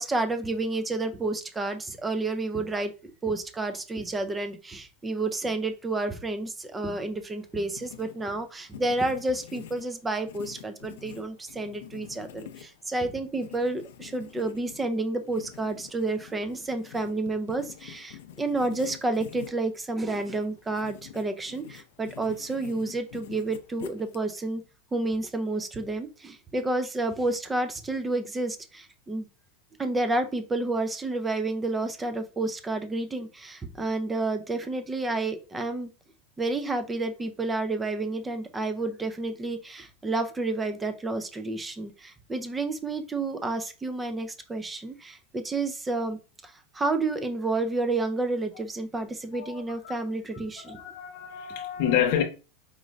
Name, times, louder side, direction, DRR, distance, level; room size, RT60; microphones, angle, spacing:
voice 1, 0.0-24.6 24.9-29.3 29.8-35.9 36.4-50.8, right 2 dB, 10° right, 0.4 m, -30 dB
Writing, 7.4-24.5, left 11 dB, 75° left, 0.5 m, -47 dB
voice 2, 49.3-49.9 50.7-52.2, left 9 dB, 50° left, 0.8 m, -28 dB
4.9 x 2.5 x 3.1 m
supercardioid pair, 180°, 0 cm